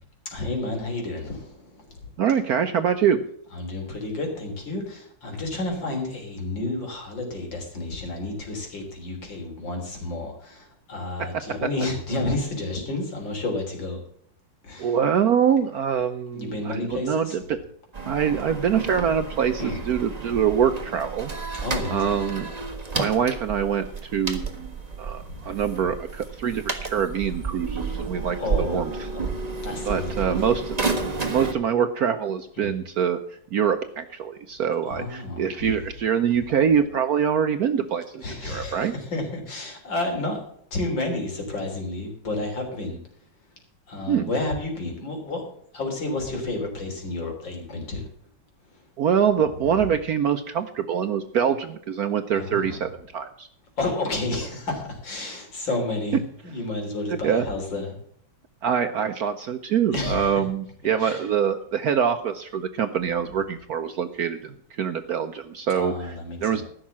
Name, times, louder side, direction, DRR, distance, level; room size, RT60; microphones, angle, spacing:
voice 1, 0.3-2.1 3.5-14.0 14.6-15.0 16.3-17.4 19.6-19.8 21.5-22.2 25.2-25.4 28.4-29.4 29.6-30.6 32.6-32.7 34.9-35.7 38.2-40.4 40.7-43.0 43.9-45.4 45.7-48.0 52.3-52.8 53.8-57.9 59.9-60.4 61.0-61.2 65.7-66.6, left 2 dB, 65° left, 2 dB, 4.1 m, -31 dB
voice 2, 2.2-3.2 14.8-17.6 18.1-21.3 21.9-22.5 23.0-24.7 25.0-29.1 29.9-30.7 31.2-33.2 33.5-38.9 44.1-44.3 49.0-53.5 57.1-57.4 58.6-65.9 66.4-66.6, right 8 dB, 65° right, 8 dB, 1.0 m, -24 dB
sound 1, 17.9-31.5, right 4 dB, 20° right, 1.4 m, -31 dB
15.0 x 6.5 x 7.3 m, 0.66 s
omnidirectional pair, 2.2 m